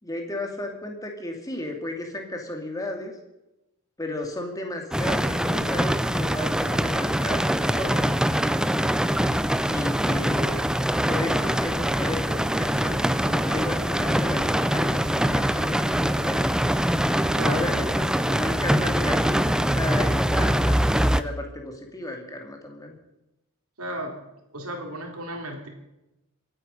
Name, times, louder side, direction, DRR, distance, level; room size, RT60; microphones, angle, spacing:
voice 1, 0.0-3.1 4.0-8.1 9.7-10.7 11.1-16.6 17.4-23.0, left 2 dB, 15° left, 3 dB, 2.4 m, -34 dB
sound 1, 4.9-21.2, equal, 5° right, 0.4 m, -23 dB
voice 2, 17.3-17.7 23.8-24.2 24.5-25.7, right 1 dB, 80° right, 2 dB, 3.6 m, -34 dB
25.0 x 9.3 x 5.4 m, 0.93 s
head